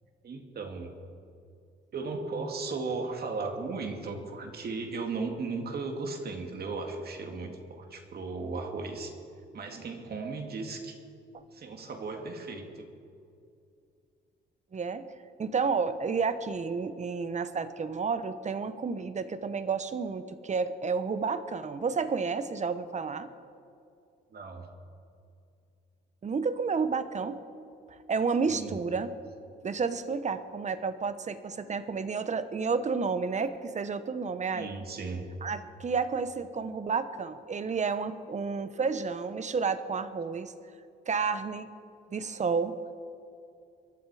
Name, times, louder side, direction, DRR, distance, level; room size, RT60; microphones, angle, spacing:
voice 1, 0.2-0.9 1.9-9.1 9.5-11.0 11.5-12.9 24.3-24.7 28.4-28.8 34.5-35.2, right 3 dB, 50° right, 3 dB, 2.3 m, -36 dB
voice 2, 14.7-15.1 15.4-23.3 26.2-27.4 27.9-29.1 29.6-34.7 35.4-40.5 41.1-41.7 42.1-42.7, right 5 dB, 35° right, 12 dB, 1.0 m, -31 dB
22.5 x 12.0 x 4.9 m, 2.5 s
cardioid pair, 90°, 20 cm